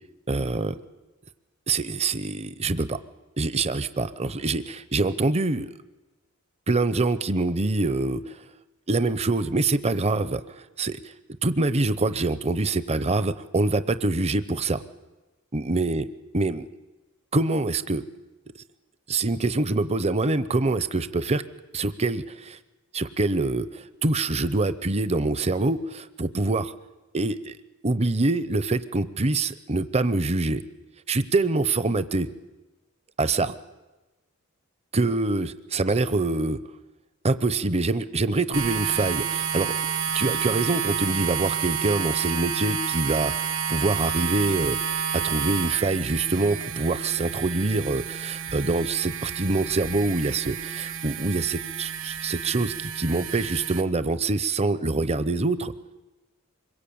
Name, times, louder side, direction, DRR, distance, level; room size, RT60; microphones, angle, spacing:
voice 1, 0.3-0.8 1.7-3.0 3.4-5.8 6.7-8.4 8.9-11.1 11.4-14.8 15.5-16.1 16.3-16.7 17.3-18.0 18.6-18.7 19.1-21.4 21.7-22.6 22.9-26.7 27.1-27.6 27.8-30.6 31.1-32.3 33.2-33.5 34.9-36.6 37.2-39.8 40.1-55.7, right 3 dB, 30° right, 13 dB, 0.8 m, -25 dB
sound 1, 38.5-53.8, right 7 dB, 65° right, 1.7 m, -30 dB
25.5 x 22.5 x 8.7 m, 1.1 s
head